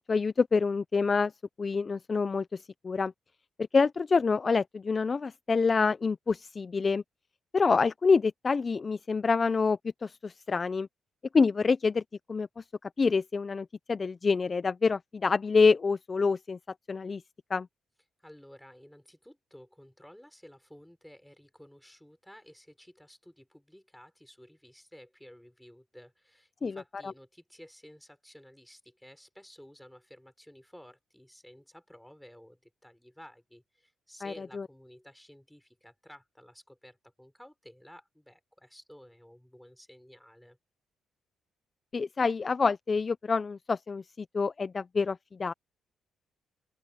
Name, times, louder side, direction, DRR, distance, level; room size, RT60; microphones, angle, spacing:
voice 1, 0.0-1.3 1.6-3.1 3.6-7.0 7.5-10.9 11.3-12.0 12.3-16.6 16.9-17.2 17.5-17.7 26.6-27.1 34.2-34.7 41.9-45.5, left 4 dB, 35° left, 0.5 m, -27 dB
voice 2, 18.2-40.6, equal, 5° left, 6.3 m, -53 dB
open air
cardioid pair, 90°, 0 cm